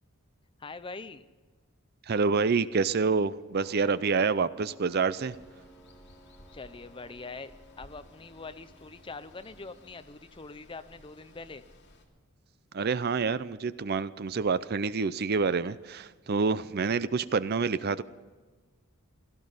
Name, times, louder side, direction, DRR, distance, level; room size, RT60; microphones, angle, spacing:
voice 1, 0.6-1.2 6.5-11.6, left 3 dB, 25° left, 11 dB, 0.6 m, -43 dB
voice 2, 2.1-5.3 12.7-18.0, right 4 dB, 45° right, 16 dB, 0.5 m, -27 dB
Piano, 3.6-10.0, right 2 dB, ahead, 1.1 m, -56 dB
Water, 5.3-12.0, left 1 dB, 55° left, 2.7 m, -57 dB
17.0 x 14.0 x 5.6 m, 1.4 s
head